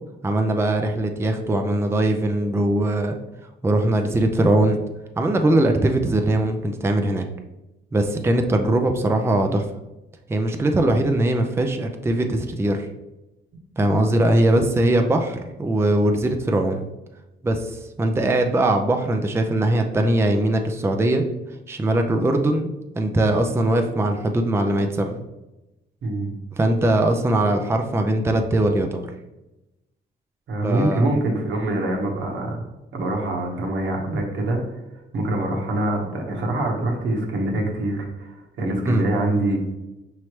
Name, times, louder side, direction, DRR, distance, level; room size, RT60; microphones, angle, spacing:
voice 1, 0.2-3.2 3.6-4.8 5.2-7.2 7.9-9.6 10.3-12.9 13.8-16.9 17.4-21.2 21.7-25.2 26.6-29.1 30.6-31.1 38.8-39.0, right 1 dB, 15° right, 4 dB, 0.4 m, -21 dB
voice 2, 13.8-14.1 26.0-26.3 30.5-32.6 32.9-34.6 35.1-39.6, right 1 dB, 75° right, 0 dB, 1.2 m, -24 dB
5.5 x 3.1 x 3.1 m, 1.0 s
cardioid pair, 90°, 20 cm